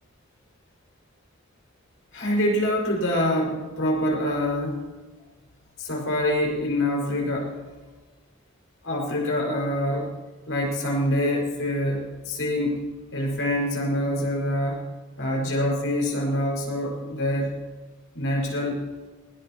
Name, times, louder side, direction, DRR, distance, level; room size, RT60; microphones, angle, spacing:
voice 1, 2.1-4.8 5.8-7.5 8.8-10.1 10.5-12.8 13.1-14.8 15.2-17.5 18.1-18.8, left 1 dB, 75° left, -1 dB, 5.9 m, -25 dB
20.0 x 18.0 x 3.1 m, 1.3 s
head